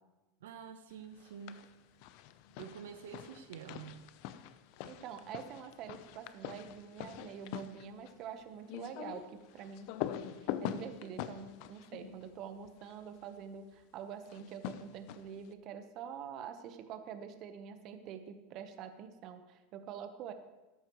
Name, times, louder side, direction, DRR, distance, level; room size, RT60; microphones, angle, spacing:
voice 1, 0.4-1.7 2.5-4.0, right 7 dB, 85° right, 8 dB, 0.9 m, -48 dB
sound 1, 1.2-1.7 2.0-13.0 14.3-15.5, left 11 dB, 60° left, 0.7 m, -44 dB
voice 2, 4.8-9.9 10.3-20.3, right 8 dB, 50° right, 8 dB, 1.0 m, -46 dB
14.0 x 11.5 x 3.1 m, 1.1 s
supercardioid pair, 120°, 0 cm